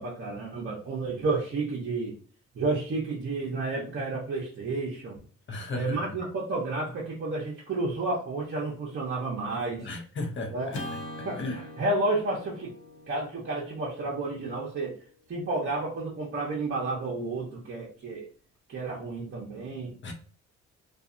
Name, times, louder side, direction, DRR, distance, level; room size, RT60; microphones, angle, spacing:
voice 1, 0.0-2.2 2.5-5.2 5.7-9.9 10.5-10.8 11.2-12.7 13.1-15.0 15.3-18.3 18.7-19.9, right 3 dB, 45° right, 0.8 m, -31 dB
voice 2, 5.5-6.0 9.8-10.8 11.2-11.6 20.0-20.1, left 2 dB, 40° left, 0.7 m, -35 dB
Acoustic guitar / Strum, 10.7-15.1, left 1 dB, 75° left, 0.9 m, -43 dB
2.6 x 2.4 x 2.4 m
cardioid pair, 90°, 30 cm